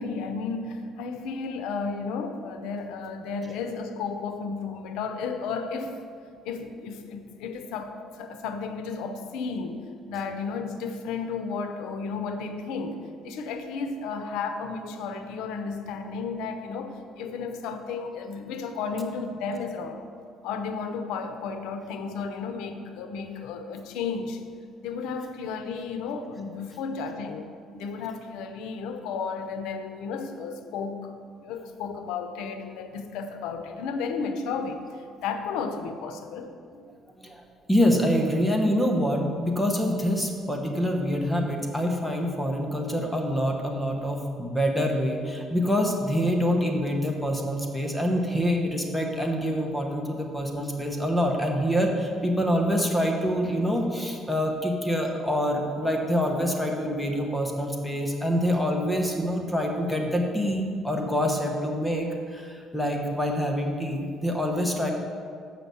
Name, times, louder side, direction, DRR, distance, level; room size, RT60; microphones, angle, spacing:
voice 1, 0.0-6.0 6.4-20.1 20.4-24.4 24.8-27.5 27.7-31.1 31.4-36.5, left 5 dB, 90° left, 7 dB, 0.7 m, -33 dB
voice 2, 37.7-64.9, equal, 5° left, 2 dB, 1.0 m, -26 dB
7.8 x 5.9 x 6.9 m, 2.2 s
cardioid pair, 120°, 0 cm